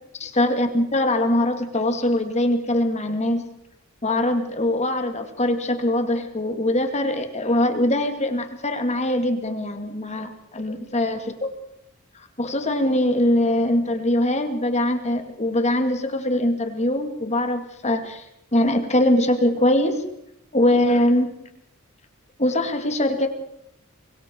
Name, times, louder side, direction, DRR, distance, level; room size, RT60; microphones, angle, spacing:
voice 1, 0.2-3.5 4.0-11.5 12.2-18.2 18.5-20.0 20.5-21.3 22.4-23.3, left 1 dB, 30° left, 6 dB, 2.4 m, -22 dB
24.5 x 23.0 x 4.6 m, 0.78 s
head